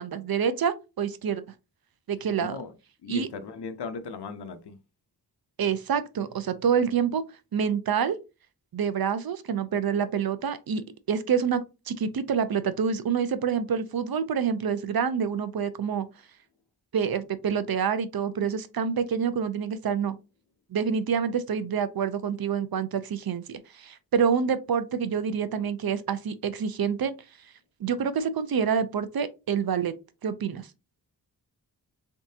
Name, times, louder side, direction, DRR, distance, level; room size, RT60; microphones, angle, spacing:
voice 1, 0.0-1.4 2.1-2.6 3.1-3.3 5.6-7.2 7.5-8.2 8.7-10.8 11.1-16.1 16.9-20.2 20.7-27.1 27.8-29.9 30.2-30.7, right 7 dB, 65° right, 0.6 m, -27 dB
voice 2, 2.4-2.7 3.0-4.8, left 4 dB, 85° left, 0.7 m, -36 dB
3.6 x 3.6 x 2.7 m
wide cardioid pair, 115°, 39 cm